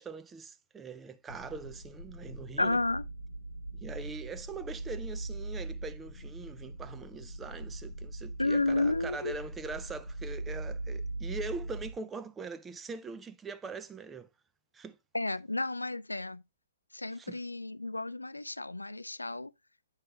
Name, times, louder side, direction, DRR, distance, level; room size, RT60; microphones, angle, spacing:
voice 1, 0.0-2.8 3.7-14.3 14.7-15.0 17.1-17.4, right 4 dB, 10° right, 0.4 m, -42 dB
sound 1, 1.3-11.9, right 2 dB, 70° left, 0.7 m, -41 dB
voice 2, 2.6-3.0 8.4-9.3 15.1-16.4 16.9-19.5, left 2 dB, 85° left, 0.3 m, -31 dB
8.7 x 6.0 x 2.2 m
figure-of-eight pair, 125°, 0 cm